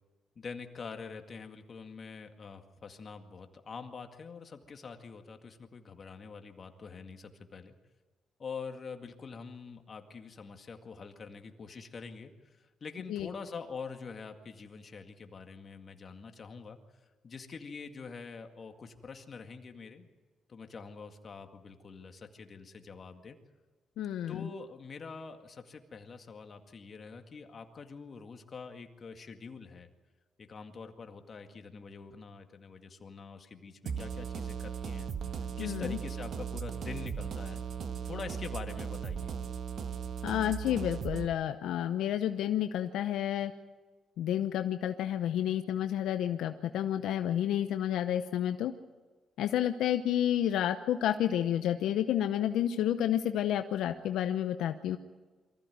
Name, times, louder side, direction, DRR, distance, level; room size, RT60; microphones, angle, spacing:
voice 1, 0.4-7.7 8.4-16.8 17.2-20.1 20.5-23.4 24.3-29.9 30.5-35.1 35.6-37.6 38.0-39.3, left 5 dB, 45° left, 6 dB, 2.0 m, -45 dB
voice 2, 24.0-24.5 35.6-36.0 40.2-43.5 44.2-48.7 49.4-55.0, left 11 dB, 80° left, 8 dB, 0.8 m, -30 dB
sound 1, 33.9-41.3, right 6 dB, 60° right, 1.5 m, -37 dB
23.5 x 15.0 x 9.4 m, 1.3 s
cardioid pair, 90°, 0 cm